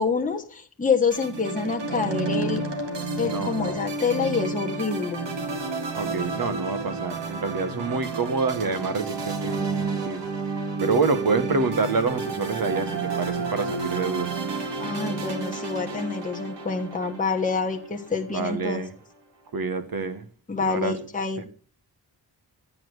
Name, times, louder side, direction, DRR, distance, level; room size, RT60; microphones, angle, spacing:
voice 1, 0.0-2.6 3.2-5.3 14.8-18.8 20.5-21.5, left 5 dB, 20° left, 1.2 m, -27 dB
sound 1, 1.1-18.5, right 3 dB, 85° right, 2.0 m, -31 dB
voice 2, 3.2-3.8 5.9-10.3 10.8-14.3 18.3-18.9 19.5-20.3 20.6-20.9, right 4 dB, 55° right, 1.4 m, -27 dB
11.0 x 8.7 x 6.4 m
wide cardioid pair, 130°, 41 cm